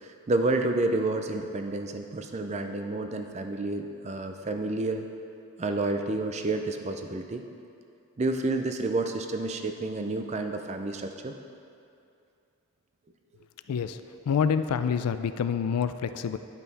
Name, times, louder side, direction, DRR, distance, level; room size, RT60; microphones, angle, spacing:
voice 1, 0.0-5.1 5.6-7.4 8.2-11.3, right 2 dB, 30° right, 5 dB, 0.4 m, -29 dB
voice 2, 14.3-16.4, left 7 dB, 90° left, 11 dB, 0.4 m, -27 dB
10.5 x 5.6 x 4.1 m, 2.5 s
head